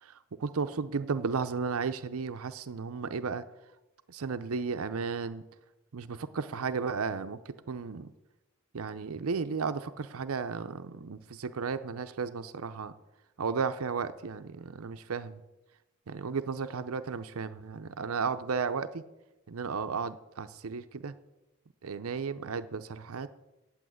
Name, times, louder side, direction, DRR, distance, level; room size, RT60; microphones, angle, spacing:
voice 1, 0.0-3.4 4.1-5.4 5.9-8.1 8.7-12.9 13.4-15.4 16.1-19.0 19.5-21.1 21.8-23.3, right 5 dB, 75° right, 11 dB, 0.6 m, -34 dB
8.6 x 8.5 x 9.2 m, 0.97 s
head